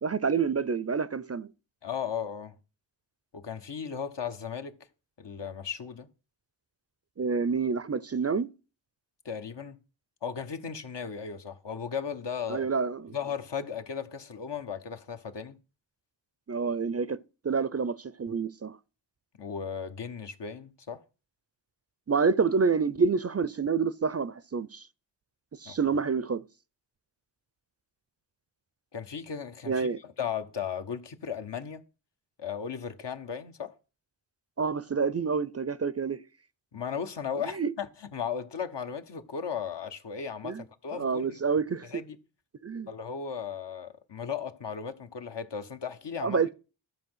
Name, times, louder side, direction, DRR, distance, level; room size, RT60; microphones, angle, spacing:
voice 1, 0.0-1.5 7.2-8.5 12.5-13.2 16.5-17.2 17.4-18.8 22.1-24.9 25.5-26.4 29.7-30.0 34.6-36.2 37.6-37.7 40.4-40.6 40.9-42.0 42.6-42.9 46.2-46.5, right 5 dB, 35° right, 0.5 m, -28 dB
voice 2, 1.8-2.5 3.3-4.8 5.2-6.1 9.2-9.8 10.2-12.7 13.1-15.6 19.4-21.0 25.6-25.8 28.9-31.8 32.4-33.7 36.7-41.4 41.9-42.2 42.9-46.4, left 7 dB, 65° left, 1.2 m, -36 dB
12.5 x 4.4 x 7.9 m
cardioid pair, 45°, 46 cm